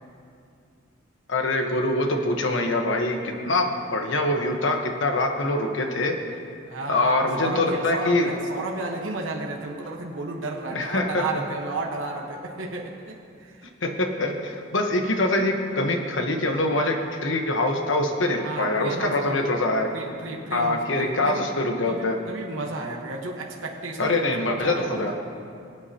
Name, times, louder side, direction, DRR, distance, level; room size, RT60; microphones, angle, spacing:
voice 1, 1.3-6.1 6.9-8.3 10.7-11.2 13.8-19.9 20.5-22.2 24.0-25.1, left 2 dB, 70° left, 3 dB, 1.1 m, -24 dB
voice 2, 6.7-13.7 18.4-19.6 19.9-21.4 21.9-24.1 24.5-25.1, right 2 dB, 75° right, 0 dB, 1.2 m, -33 dB
23.5 x 8.3 x 2.9 m, 2.4 s
head